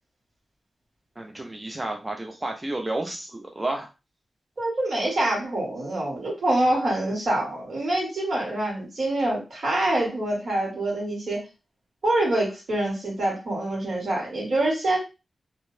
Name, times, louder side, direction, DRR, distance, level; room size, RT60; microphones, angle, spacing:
voice 1, 1.2-3.9, right 2 dB, 15° right, 2 dB, 0.3 m, -31 dB
voice 2, 4.6-11.4 12.0-15.0, right 1 dB, 65° right, -2 dB, 1.4 m, -25 dB
2.6 x 2.0 x 3.1 m, 0.27 s
wide cardioid pair, 180°, 0 cm